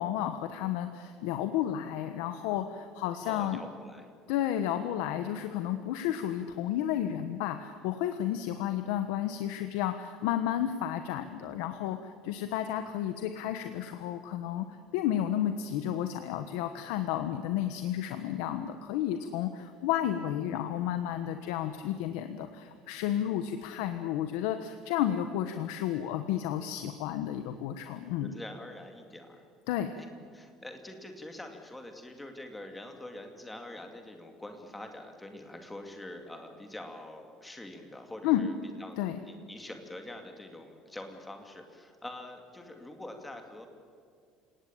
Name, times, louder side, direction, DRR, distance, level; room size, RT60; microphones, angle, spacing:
voice 1, 0.0-3.6 4.3-14.7 14.9-28.3 29.7-29.9 38.2-38.5 39.0-39.2, left 11 dB, 90° left, 8 dB, 1.3 m, -32 dB
voice 2, 3.2-4.1 28.1-29.4 30.0-30.1 30.3-38.5 38.8-43.7, left 1 dB, 5° left, 4 dB, 2.3 m, -45 dB
29.0 x 18.0 x 8.8 m, 2.3 s
cardioid pair, 180°, 0 cm